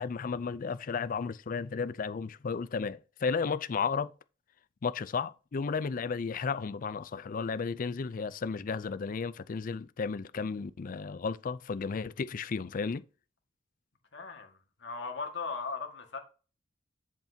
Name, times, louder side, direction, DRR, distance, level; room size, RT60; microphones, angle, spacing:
voice 1, 0.0-4.1 4.8-13.0, left 5 dB, 45° left, 0.4 m, -33 dB
voice 2, 14.1-16.2, left 4 dB, 70° left, 1.8 m, -38 dB
8.0 x 7.2 x 2.8 m
head